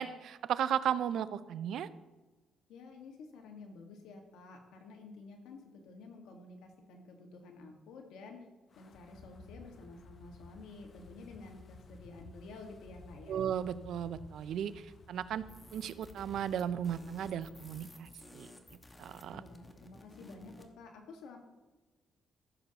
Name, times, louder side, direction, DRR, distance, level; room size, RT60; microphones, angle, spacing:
voice 1, 0.0-1.9 13.3-15.4 15.7-18.5 19.0-19.4, right 9 dB, 75° right, 15 dB, 0.5 m, -35 dB
voice 2, 2.7-8.4 8.8-13.4 19.3-21.4, left 3 dB, 85° left, 3 dB, 1.5 m, -51 dB
Wind, 8.7-17.9, left 3 dB, 50° left, 0.8 m, -55 dB
sound 1, 15.5-20.7, left 1 dB, 15° left, 1.1 m, -55 dB
15.0 x 6.9 x 2.9 m, 1.2 s
cardioid pair, 90°, 0 cm